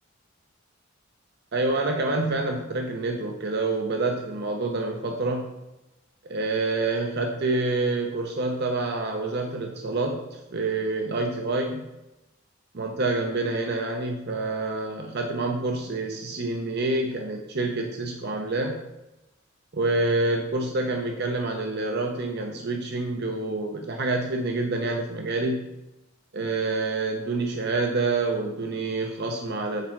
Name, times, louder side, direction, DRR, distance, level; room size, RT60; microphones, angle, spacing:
voice 1, 1.5-5.5 6.2-11.9 12.7-18.8 19.7-25.7 26.3-29.9, right 2 dB, 55° right, 3 dB, 0.7 m, -27 dB
6.7 x 4.8 x 5.8 m, 0.98 s
head